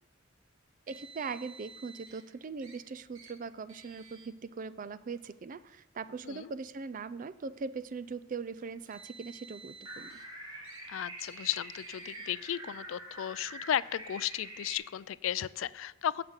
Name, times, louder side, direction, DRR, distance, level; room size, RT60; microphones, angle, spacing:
voice 1, 0.9-10.2, right 4 dB, 40° right, 15 dB, 0.4 m, -40 dB
Car, 0.9-2.2 2.6-2.8 3.1-3.3 3.7-4.3 5.1-5.3 6.2-6.3 8.6-10.3 10.6-10.8 11.2-11.4 11.7-12.3, right 4 dB, 80° right, 1.8 m, -52 dB
sound 1, 9.8-14.7, right 1 dB, 20° right, 2.1 m, -46 dB
voice 2, 10.9-16.2, left 10 dB, 70° left, 19 dB, 0.3 m, -34 dB
9.6 x 6.7 x 8.1 m, 1.0 s
head